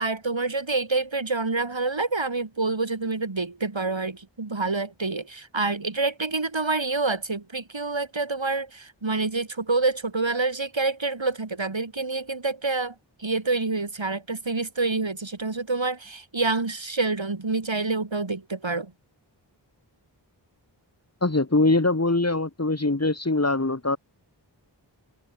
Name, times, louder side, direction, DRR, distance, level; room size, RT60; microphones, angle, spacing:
voice 1, 0.0-18.9, right 3 dB, 90° right, 5.0 m, -27 dB
voice 2, 21.2-24.0, left 2 dB, 35° left, 2.4 m, -22 dB
wide cardioid pair, 45°, 44 cm